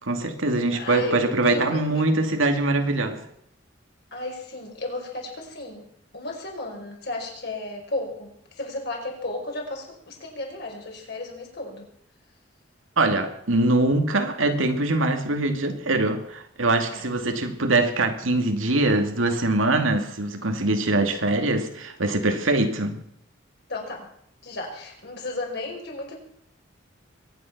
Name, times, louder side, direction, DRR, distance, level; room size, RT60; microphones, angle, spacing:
voice 1, 0.0-3.2 13.0-23.0, right 2 dB, 90° right, 2.4 m, -23 dB
voice 2, 0.7-2.1 4.1-5.9 6.1-8.3 8.6-11.8 16.9-17.1 23.7-24.1 24.4-26.2, left 2 dB, 55° left, 5.1 m, -34 dB
23.0 x 9.9 x 6.0 m
head